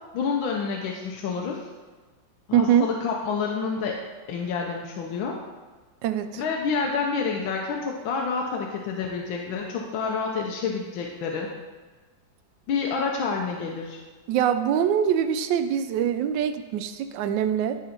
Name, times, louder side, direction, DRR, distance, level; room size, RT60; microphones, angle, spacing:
voice 1, 0.1-1.6 2.5-4.0 4.3-5.4 6.4-11.5 12.7-14.0, left 5 dB, 80° left, 0 dB, 1.5 m, -28 dB
voice 2, 2.5-2.9 6.0-6.4 14.3-17.8, right 9 dB, 75° right, 9 dB, 1.2 m, -23 dB
10.5 x 3.9 x 5.1 m, 1.3 s
omnidirectional pair, 2.1 m